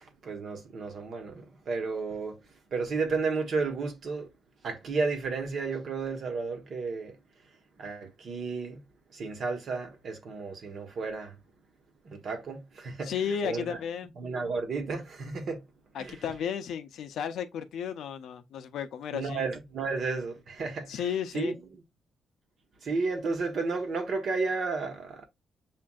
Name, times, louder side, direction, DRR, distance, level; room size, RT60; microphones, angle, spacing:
voice 1, 0.0-2.4 2.7-4.3 4.6-7.2 7.8-8.8 9.1-11.4 12.0-13.1 13.4-13.8 14.2-15.6 16.0-16.2 19.1-21.0 21.3-21.5 22.8-25.3, right 4 dB, 50° right, 1.1 m, -32 dB
voice 2, 13.0-14.1 15.9-19.4 20.9-21.6, left 8 dB, 75° left, 0.6 m, -33 dB
7.2 x 2.5 x 2.3 m
cardioid pair, 130°, 0 cm